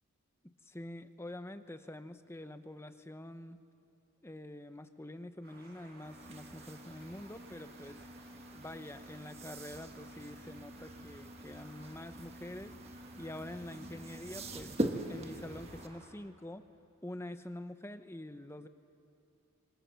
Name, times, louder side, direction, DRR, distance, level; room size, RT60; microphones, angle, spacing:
voice 1, 0.4-3.6 4.2-8.0 8.5-12.8 13.2-14.8 15.1-16.6 17.0-18.7, left 1 dB, 10° left, 10 dB, 0.8 m, -46 dB
sound 1, 5.4-16.1, right 3 dB, 45° right, 6.0 m, -58 dB
sound 2, 6.0-15.9, right 1 dB, 30° right, 1.3 m, -43 dB
25.5 x 25.5 x 7.0 m, 2.7 s
head